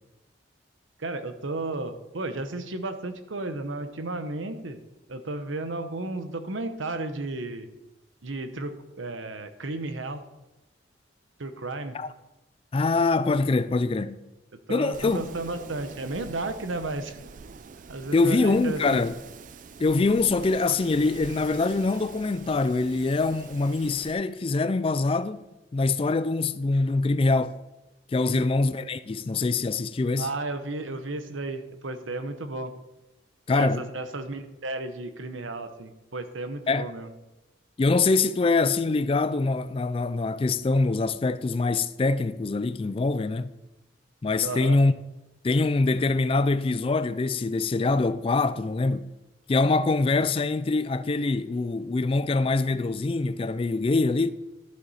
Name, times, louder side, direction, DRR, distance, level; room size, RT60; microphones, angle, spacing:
voice 1, 1.0-4.8 5.1-7.7 8.2-10.2 11.4-12.0 14.7-17.2 17.9-19.0 28.2-28.4 30.2-32.7 33.5-37.1 44.4-44.8, right 2 dB, 90° right, 1.0 m, -33 dB
voice 2, 12.7-14.2 14.7-15.3 18.1-19.1 19.8-25.5 25.7-27.6 28.1-30.3 33.5-33.8 36.7-36.9 37.8-43.5 44.2-44.9 45.4-49.1 49.5-54.3, left 3 dB, 30° left, 0.3 m, -24 dB
Wind, 14.9-24.1, right 5 dB, 45° right, 0.4 m, -45 dB
12.0 x 7.8 x 4.2 m
head